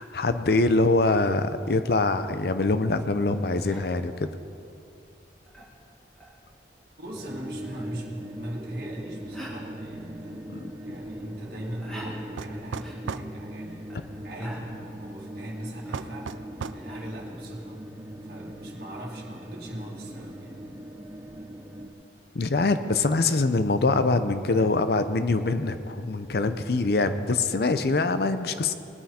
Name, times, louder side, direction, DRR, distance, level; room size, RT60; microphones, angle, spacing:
voice 1, 0.0-4.3 10.5-10.7 22.3-28.7, left 3 dB, 55° left, 10 dB, 0.6 m, -24 dB
sound 1, 3.3-17.0, right 1 dB, 5° left, 2.0 m, -50 dB
voice 2, 7.0-13.9 14.2-17.8 18.2-20.6, right 1 dB, 55° right, -4 dB, 1.9 m, -40 dB
sound 2, 7.1-21.9, equal, 15° right, 0.8 m, -40 dB
sound 3, 12.4-13.3 15.9-16.9, right 6 dB, 85° right, 0.4 m, -35 dB
19.0 x 9.3 x 4.3 m, 2.5 s
head